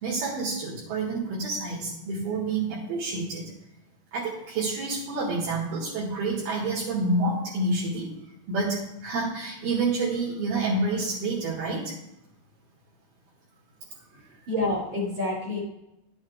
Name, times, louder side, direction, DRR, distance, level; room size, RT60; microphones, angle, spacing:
voice 1, 0.0-3.5 4.1-8.1 8.5-11.9, right 3 dB, 65° right, -7 dB, 3.8 m, -28 dB
voice 2, 14.1-15.6, left 2 dB, 45° right, -5 dB, 4.0 m, -29 dB
12.5 x 8.4 x 2.4 m, 0.86 s
omnidirectional pair, 4.8 m